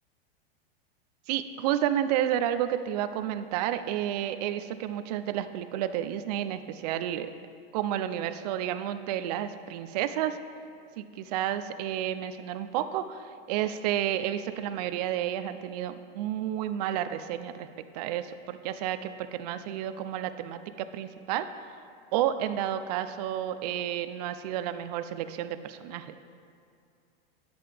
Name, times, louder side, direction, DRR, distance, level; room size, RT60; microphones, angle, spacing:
voice 1, 1.3-7.3 7.7-10.4 11.0-17.7 17.9-21.5 22.1-26.2, right 11 dB, 45° right, 11 dB, 0.4 m, -31 dB
10.5 x 7.7 x 3.3 m, 2.5 s
supercardioid pair, 155°, 30 cm